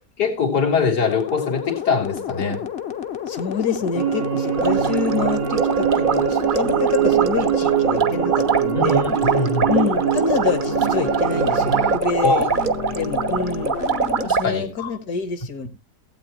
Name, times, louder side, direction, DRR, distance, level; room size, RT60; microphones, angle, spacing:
voice 1, 0.2-2.6 8.7-9.7 12.2-12.5 14.2-14.9, left 4 dB, 90° left, 2.8 m, -22 dB
sound 1, 1.0-14.3, left 8 dB, 50° left, 0.9 m, -31 dB
voice 2, 3.3-9.0 9.7-12.5 12.9-13.8 14.4-15.7, left 5 dB, 65° left, 1.8 m, -26 dB
sound 2, 3.9-12.0, right 13 dB, 70° right, 1.1 m, -23 dB
sound 3, 4.5-14.5, right 5 dB, 50° right, 0.6 m, -23 dB
15.5 x 8.5 x 3.0 m
omnidirectional pair, 1.7 m